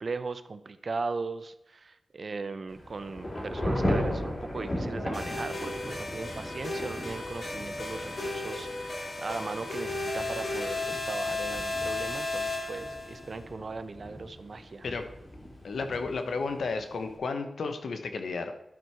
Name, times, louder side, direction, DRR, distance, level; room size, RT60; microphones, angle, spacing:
voice 1, 0.0-14.9, right 4 dB, 60° right, 12 dB, 0.6 m, -38 dB
Thunder / Rain, 2.7-17.2, equal, 40° left, 2.9 m, -37 dB
sound 1, 5.1-13.2, left 2 dB, 65° left, 2.9 m, -34 dB
voice 2, 15.6-18.5, left 4 dB, 85° left, 7 dB, 1.0 m, -32 dB
11.5 x 4.6 x 4.5 m, 0.87 s
cardioid pair, 60°, 0 cm